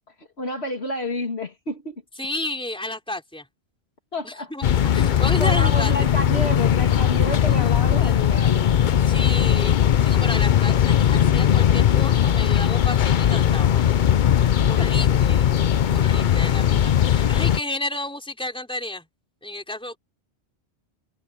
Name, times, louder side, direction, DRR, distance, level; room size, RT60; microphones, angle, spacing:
voice 1, 0.2-2.0 4.1-4.5 5.0-5.1 5.4-8.7 14.3-14.4 14.8-14.9, left 1 dB, 70° left, 2.7 m, -29 dB
voice 2, 2.2-3.5 4.2-5.9 7.5-8.3 9.1-9.8 10.0-13.8 14.7-15.5 15.9-19.1 19.4-20.0, left 1 dB, 5° left, 3.8 m, -32 dB
sound 1, 4.6-17.6, left 10 dB, 55° left, 0.7 m, -19 dB
omnidirectional pair, 1.1 m